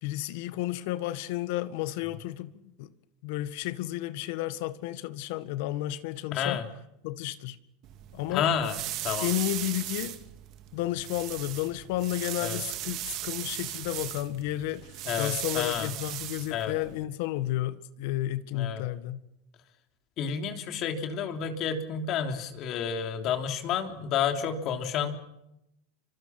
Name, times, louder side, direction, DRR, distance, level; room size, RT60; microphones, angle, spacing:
voice 1, 0.0-2.9 3.2-6.6 7.0-7.6 8.1-8.5 9.2-10.2 10.7-19.2, left 15 dB, 65° left, 1.7 m, -32 dB
voice 2, 6.3-6.6 8.3-8.8 9.0-9.3 12.4-12.6 15.0-15.9 16.5-16.7 18.5-18.8 20.2-25.2, left 7 dB, 45° left, 3.4 m, -30 dB
sound 1, 7.8-17.0, right 14 dB, 50° right, 2.4 m, -38 dB
26.5 x 25.0 x 6.0 m
supercardioid pair, 130°, 0 cm